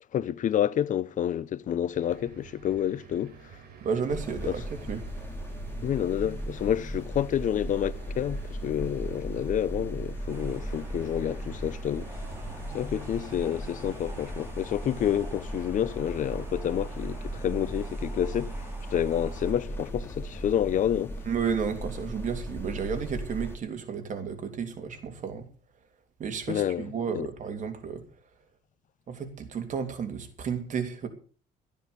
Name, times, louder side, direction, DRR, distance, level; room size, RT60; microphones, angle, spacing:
voice 1, 0.1-3.4 4.4-4.5 5.8-12.1 12.7-21.2 26.5-27.3, left 10 dB, 50° left, 0.8 m, -29 dB
sound 1, 1.9-14.4, right 5 dB, 65° right, 4.6 m, -49 dB
voice 2, 3.8-5.0 21.3-25.5 26.2-28.0 29.1-31.1, right 6 dB, 45° right, 3.1 m, -32 dB
sound 2, 4.1-23.6, right 1 dB, 15° left, 3.4 m, -37 dB
sound 3, 10.3-19.5, right 1 dB, 15° right, 5.1 m, -49 dB
13.0 x 10.5 x 6.9 m
cardioid pair, 110°, 17 cm